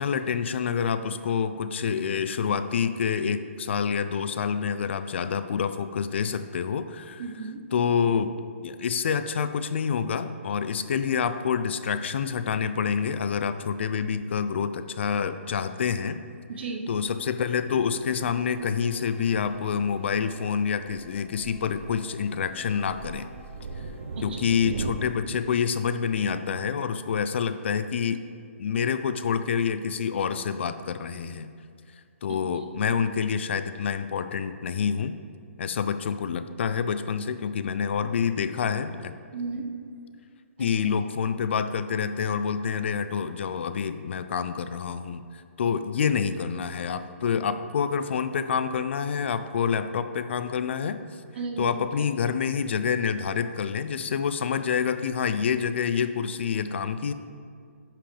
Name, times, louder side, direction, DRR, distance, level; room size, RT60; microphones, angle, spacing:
voice 1, 0.0-7.2 7.7-8.3 8.6-16.2 16.9-23.3 24.2-28.2 28.6-31.5 32.2-35.1 35.6-39.1 40.6-51.0 51.6-57.1, left 7 dB, 55° left, 11 dB, 0.4 m, -27 dB
voice 2, 7.2-7.6 16.5-16.8 24.3-24.6 32.7-32.9 39.3-39.7 40.6-40.7 51.3-51.7, right 4 dB, 50° right, 3 dB, 1.0 m, -34 dB
Thunder, 17.0-24.9, right 4 dB, 75° right, 0.7 m, -40 dB
sound 1, 18.4-25.1, right 1 dB, 15° right, 1.3 m, -52 dB
10.0 x 5.8 x 3.4 m, 2.2 s
hypercardioid pair, 160°, 7 cm